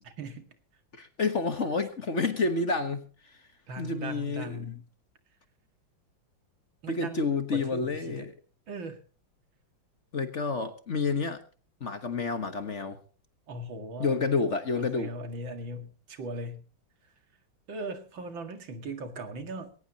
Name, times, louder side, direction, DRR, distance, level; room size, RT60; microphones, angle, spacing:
voice 1, 0.0-0.5 1.0-1.1 3.7-4.9 6.8-7.2 7.5-8.3 8.7-9.0 13.5-14.3 14.8-16.6 17.7-19.7, right 1 dB, 80° right, 7 dB, 2.8 m, -39 dB
voice 2, 1.0-3.0 3.8-4.6 6.9-8.3 10.1-11.4 11.8-13.0 14.0-15.1, left 4 dB, 40° left, 9 dB, 1.5 m, -29 dB
21.0 x 18.0 x 2.9 m, 0.36 s
omnidirectional pair, 2.1 m